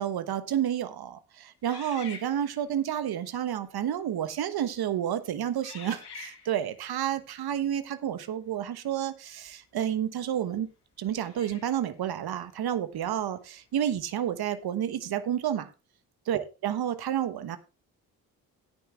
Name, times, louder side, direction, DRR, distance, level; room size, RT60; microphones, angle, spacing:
voice 1, 0.0-10.7 11.0-15.7 16.3-17.6, right 10 dB, 70° right, 12 dB, 1.2 m, -30 dB
sound 1, 1.7-2.8 3.6-3.9 4.5-4.9 5.6-6.8 9.5-9.6 11.1-11.9, left 6 dB, 75° left, 2.2 m, -47 dB
17.5 x 5.9 x 3.4 m, 0.30 s
supercardioid pair, 55°, 39 cm